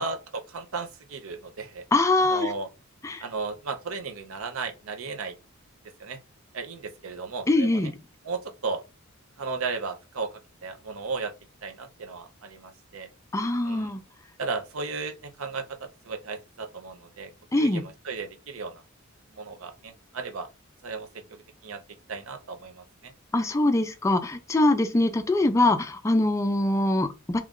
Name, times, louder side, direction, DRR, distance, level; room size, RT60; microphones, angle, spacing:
voice 1, 0.0-1.8 2.2-2.7 3.2-5.4 6.0-6.2 6.5-7.8 8.2-8.8 9.4-10.3 10.6-11.3 11.6-13.1 13.6-13.9 14.4-17.3 17.6-18.8 19.3-20.5 20.8-21.8 22.1-23.1, right 4 dB, 80° right, 0.6 m, -35 dB
voice 2, 1.9-2.5 3.0-3.2 7.5-8.0 13.3-14.0 17.5-17.8 23.3-27.4, left 2 dB, 15° left, 0.3 m, -23 dB
3.0 x 2.4 x 3.6 m
head